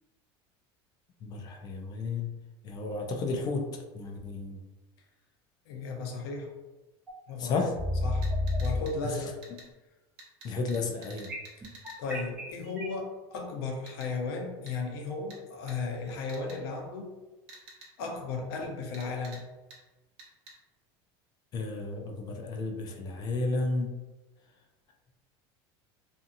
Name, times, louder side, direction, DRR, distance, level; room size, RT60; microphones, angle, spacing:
voice 1, 1.2-2.3 2.6-4.6 7.4-7.7 9.0-9.2 10.4-11.3 21.5-23.9, left 3 dB, 30° left, 3 dB, 0.4 m, -32 dB
voice 2, 5.7-6.5 7.3-7.7 8.0-8.3 8.6-9.4 12.0-17.1 18.0-19.4, left 4 dB, 75° left, 2 dB, 0.7 m, -35 dB
sound 1, 7.1-7.2 7.7-8.8 11.3-13.0, left 2 dB, 10° right, 0.6 m, -30 dB
sound 2, 8.2-8.9 9.4-9.7 10.2-12.0 13.9-14.1 14.7-14.8 15.3-15.4 15.7-15.8 16.3-16.6 17.5-17.9 18.9-19.4 19.7-19.8 20.2-20.5, right 2 dB, 60° right, 0.9 m, -49 dB
2.6 x 2.6 x 2.5 m, 1.1 s
supercardioid pair, 150°, 13 cm